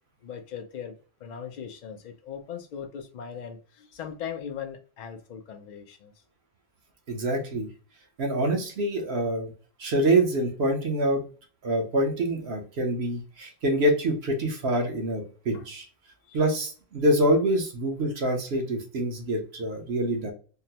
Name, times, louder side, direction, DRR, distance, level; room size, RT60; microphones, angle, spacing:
voice 1, 0.2-6.1 15.5-15.6 16.2-16.4, left 8 dB, 75° left, 0.4 m, -39 dB
voice 2, 7.1-7.7 8.2-9.5 9.8-11.2 11.6-15.8 16.3-20.3, right 1 dB, 60° right, 0.9 m, -25 dB
3.6 x 2.0 x 2.7 m
omnidirectional pair, 1.3 m